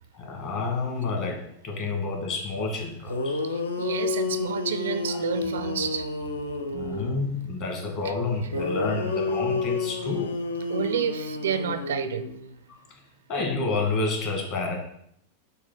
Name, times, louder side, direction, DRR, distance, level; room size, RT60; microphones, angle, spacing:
voice 1, 0.1-3.4 5.1-5.2 6.6-10.4 12.7-12.8 13.3-14.8, left 3 dB, 40° left, 1 dB, 1.7 m, -29 dB
sound 1, 2.8-2.9 3.1-7.3 8.5-12.5, left 3 dB, 75° left, 0.7 m, -30 dB
voice 2, 3.5-6.1 8.0-8.1 10.7-12.2, right 8 dB, 60° right, 12 dB, 0.4 m, -30 dB
6.7 x 2.8 x 5.7 m, 0.72 s
figure-of-eight pair, 90°, 0 cm